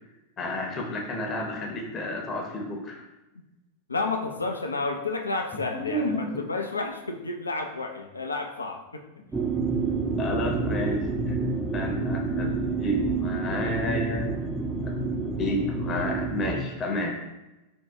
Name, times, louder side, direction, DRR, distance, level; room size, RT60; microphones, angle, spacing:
voice 1, 0.4-3.0 5.9-6.3 10.2-14.4 14.8-14.9 15.2-17.3, left 1 dB, 25° left, 1 dB, 0.7 m, -31 dB
voice 2, 3.9-9.0, left 3 dB, 80° left, 4 dB, 0.4 m, -31 dB
sound 1, 9.3-16.6, right 4 dB, 15° right, 0.4 m, -28 dB
3.5 x 2.2 x 4.3 m, 1.0 s
figure-of-eight pair, 90°, 0 cm